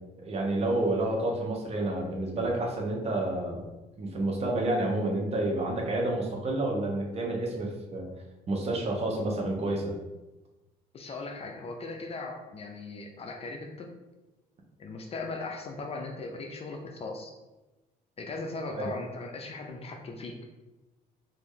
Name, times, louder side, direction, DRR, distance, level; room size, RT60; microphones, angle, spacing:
voice 1, 0.2-3.7 4.0-8.1 8.5-9.9 18.7-18.9, right 2 dB, 40° right, 0 dB, 0.9 m, -29 dB
voice 2, 10.9-13.9 14.8-17.3 18.2-20.4, left 3 dB, 35° left, 3 dB, 0.5 m, -38 dB
3.1 x 2.5 x 3.7 m, 1.1 s
cardioid pair, 110°, 17 cm